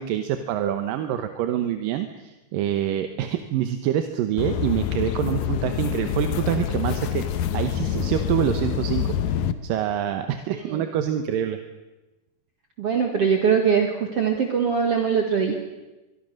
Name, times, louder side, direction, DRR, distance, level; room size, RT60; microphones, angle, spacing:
voice 1, 0.0-11.6, right 10 dB, 70° right, 8 dB, 2.4 m, -26 dB
sound 1, 4.4-9.5, left 8 dB, 75° left, 1.8 m, -26 dB
voice 2, 10.5-10.8 12.8-15.5, right 6 dB, 50° right, 3 dB, 2.1 m, -22 dB
23.5 x 23.0 x 6.5 m, 1.1 s
omnidirectional pair, 4.6 m